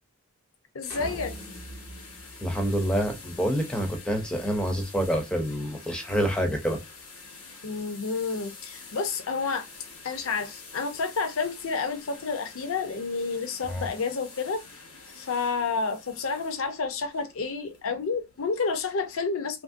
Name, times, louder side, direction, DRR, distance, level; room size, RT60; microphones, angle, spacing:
voice 1, 0.7-1.3 7.6-9.7 10.0-14.6 15.1-19.6, left 4 dB, 70° left, 0.5 m, -30 dB
sound 1, 0.8-19.1, left 4 dB, 85° left, 1.3 m, -47 dB
sound 2, 0.9-3.3, right 2 dB, 45° right, 0.6 m, -42 dB
voice 2, 2.4-6.8 13.7-13.9, equal, 5° left, 0.5 m, -27 dB
2.9 x 2.6 x 2.5 m
head